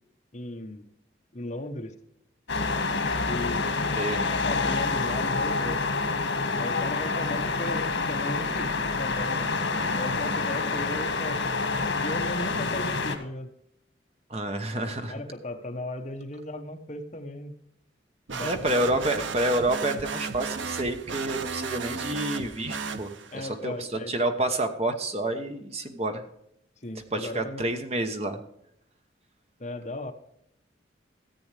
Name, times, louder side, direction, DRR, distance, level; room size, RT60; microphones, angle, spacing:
voice 1, 0.3-0.8 1.3-1.9 3.3-3.6 4.3-5.8 6.6-9.5 10.0-11.4 12.0-13.5 14.8-17.5 18.3-18.5 18.9-19.1 23.3-24.1 26.8-27.6 29.6-30.1, left 1 dB, 40° left, 5 dB, 1.1 m, -36 dB
sound 1, 2.5-13.2, left 3 dB, 80° left, 1.6 m, -27 dB
voice 2, 14.3-15.2 18.4-26.2 27.1-28.4, right 1 dB, 35° right, 7 dB, 1.0 m, -29 dB
sound 2, 18.3-23.5, right 5 dB, 85° right, 0.7 m, -34 dB
14.5 x 8.7 x 3.4 m, 0.77 s
head